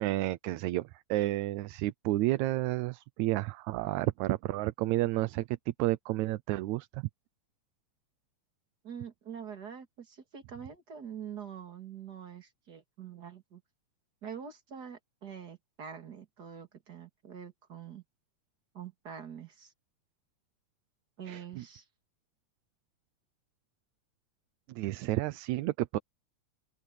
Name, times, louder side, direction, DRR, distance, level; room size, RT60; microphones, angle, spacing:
voice 1, 0.0-7.1 21.3-21.6 24.7-26.0, right 17 dB, 80° right, 2.0 m, -31 dB
voice 2, 8.8-13.6 14.2-18.0 18.7-19.7 21.2-21.8, right 8 dB, 35° right, 2.3 m, -45 dB
open air
omnidirectional pair, 3.4 m